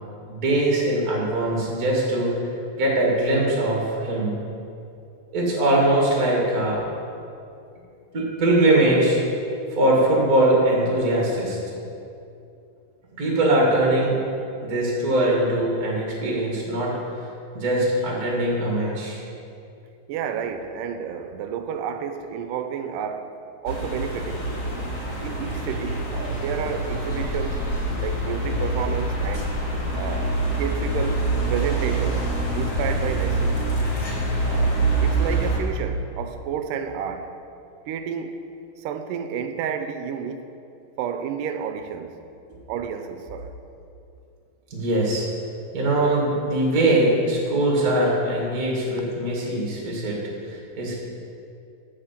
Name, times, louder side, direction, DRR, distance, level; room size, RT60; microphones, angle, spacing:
voice 1, 0.3-2.3 2.8-4.4 5.3-6.8 8.1-9.2 9.7-11.6 13.2-14.2 14.6-17.0 17.5-19.2 44.7-45.3 45.7-50.9, right 1 dB, 35° right, 1.6 m, -21 dB
voice 2, 20.1-23.3 23.6-24.5 25.2-27.6 28.0-29.6 29.9-32.2 32.5-33.6 34.4-37.3 37.9-38.4 38.8-40.5 41.0-42.2 42.7-43.5, right 7 dB, 80° right, 2.1 m, -31 dB
sound 1, 23.6-35.6, right 2 dB, 70° left, 0.7 m, -25 dB
9.7 x 6.4 x 7.4 m
omnidirectional pair, 4.0 m